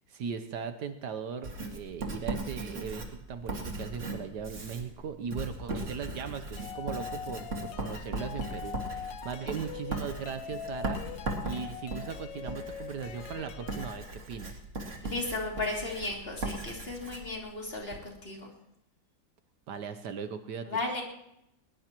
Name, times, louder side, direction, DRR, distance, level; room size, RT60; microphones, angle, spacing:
voice 1, 0.1-14.6 19.7-20.8, right 6 dB, 70° right, 9 dB, 1.4 m, -39 dB
Writing, 1.4-18.1, right 2 dB, 40° right, 2.3 m, -38 dB
sound 1, 6.6-14.0, left 8 dB, 90° left, 1.6 m, -42 dB
voice 2, 15.0-18.5 20.7-21.0, left 2 dB, 30° left, -1 dB, 3.0 m, -35 dB
20.5 x 20.0 x 3.0 m, 0.82 s
omnidirectional pair, 2.0 m